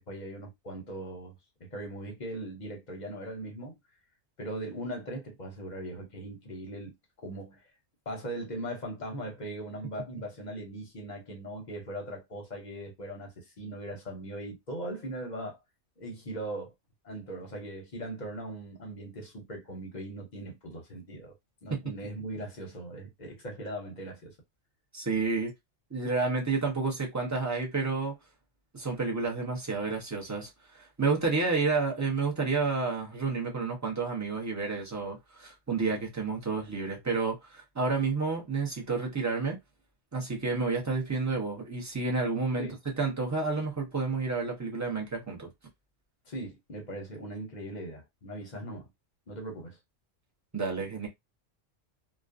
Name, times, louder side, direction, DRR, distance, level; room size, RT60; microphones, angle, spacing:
voice 1, 0.0-1.3 1.6-3.7 4.4-7.7 8.1-15.6 16.0-16.7 17.0-21.3 21.6-24.3 42.6-42.7 46.3-48.9 49.3-49.8, right 1 dB, 45° left, 0.7 m, -39 dB
voice 2, 24.9-25.5 25.9-28.1 28.7-39.6 40.1-42.7 43.0-45.5 50.5-51.1, right 4 dB, 20° right, 0.5 m, -30 dB
2.4 x 2.1 x 2.4 m
omnidirectional pair, 1.3 m